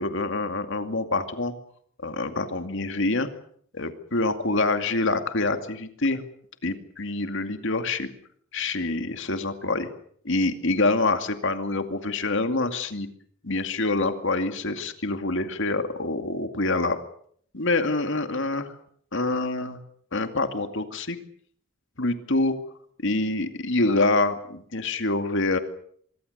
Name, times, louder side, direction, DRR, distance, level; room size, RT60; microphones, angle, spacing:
voice 1, 0.0-1.5 2.0-3.3 3.7-6.2 6.6-8.1 8.5-9.9 10.2-13.1 13.4-17.0 17.5-18.7 19.1-19.8 20.1-21.2 22.0-22.6 23.0-25.6, left 2 dB, 55° left, 8 dB, 2.4 m, -26 dB
24.5 x 23.5 x 6.7 m, 0.63 s
head